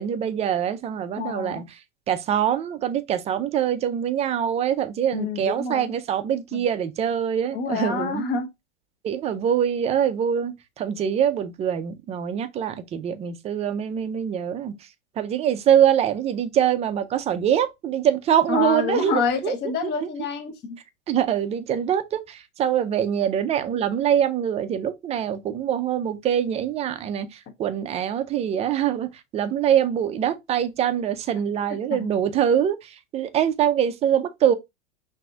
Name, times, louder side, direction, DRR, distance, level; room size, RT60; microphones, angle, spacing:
voice 1, 0.0-1.6 2.1-8.3 9.0-14.7 15.2-19.5 20.0-20.1 21.1-29.1 29.3-34.5, right 9 dB, 20° right, 0.4 m, -24 dB
voice 2, 1.2-1.7 5.1-5.9 6.5-6.7 7.5-8.5 18.5-20.8 31.9-32.1, left 5 dB, 30° left, 0.9 m, -27 dB
5.9 x 2.7 x 2.3 m
hypercardioid pair, 120°, 33 cm